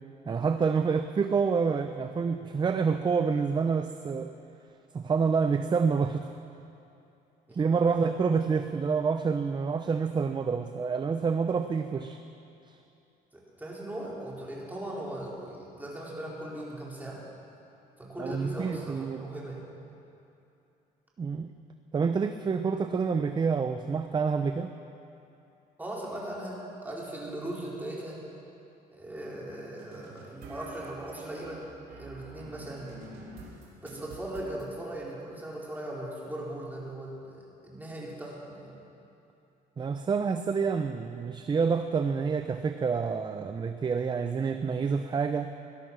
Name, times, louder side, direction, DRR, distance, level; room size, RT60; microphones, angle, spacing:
voice 1, 0.3-4.3 4.9-6.3 7.5-12.2 12.7-12.8 18.2-19.2 21.2-21.5 21.9-24.7 39.8-45.5, right 5 dB, 25° right, 8 dB, 0.6 m, -28 dB
voice 2, 7.5-8.0 13.3-17.3 18.0-19.7 25.8-28.3 28.9-31.7 32.0-33.0 33.8-38.8, right 1 dB, 10° right, -5 dB, 4.2 m, -39 dB
sound 1, 29.8-34.7, right 2 dB, 65° right, 3.4 m, -47 dB
19.0 x 12.0 x 6.2 m, 2.8 s
cardioid pair, 110°, 17 cm